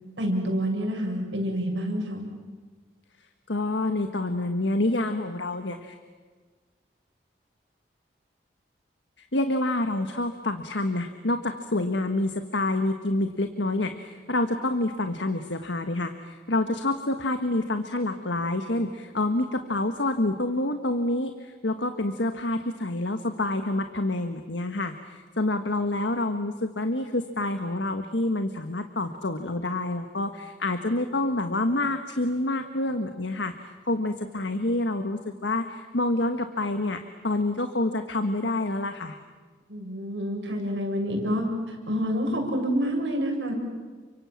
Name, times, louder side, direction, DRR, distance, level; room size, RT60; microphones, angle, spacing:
voice 1, 0.2-2.2 39.7-43.5, equal, 80° right, 1 dB, 7.0 m, -28 dB
voice 2, 3.5-5.9 9.2-33.5 33.9-39.2, left 2 dB, 80° left, 7 dB, 1.5 m, -27 dB
30.0 x 25.0 x 7.6 m, 1.4 s
head